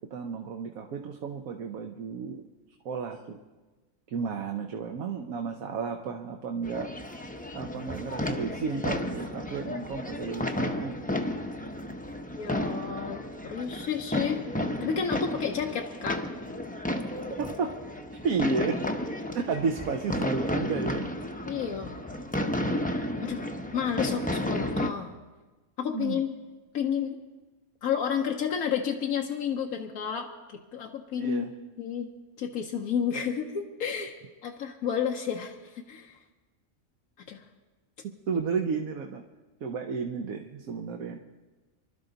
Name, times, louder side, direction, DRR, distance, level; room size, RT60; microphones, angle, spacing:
voice 1, 0.1-2.4 2.8-3.4 4.1-6.9 7.5-11.0 17.3-17.8 18.2-18.8 19.3-21.1 25.9-26.2 31.2-31.5 38.3-39.2 39.6-41.2, right 5 dB, 75° right, 4 dB, 1.3 m, -32 dB
sound 1, 6.6-24.9, left 1 dB, 10° left, 0.5 m, -33 dB
voice 2, 12.3-14.4 14.8-16.2 21.4-22.0 23.2-25.1 25.8-26.3 26.7-27.2 27.8-31.5 31.8-32.1 32.4-34.2 34.4-36.2 37.3-37.4, left 7 dB, 85° left, 2 dB, 1.3 m, -31 dB
26.0 x 12.0 x 3.9 m, 1.2 s
omnidirectional pair, 1.5 m